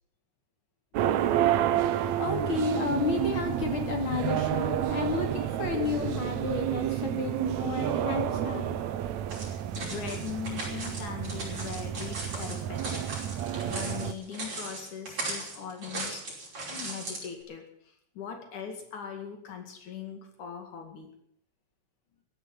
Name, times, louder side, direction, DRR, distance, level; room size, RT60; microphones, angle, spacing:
sound 1, 0.9-14.1, right 11 dB, 70° right, 2.0 m, -30 dB
voice 1, 1.6-8.8, left 4 dB, 40° left, 3 dB, 3.1 m, -32 dB
sound 2, 9.3-17.3, right 2 dB, 45° right, 6.2 m, -38 dB
voice 2, 9.8-13.2 13.6-21.1, left 7 dB, 70° left, 4 dB, 3.6 m, -40 dB
16.0 x 11.0 x 8.1 m, 0.68 s
omnidirectional pair, 3.6 m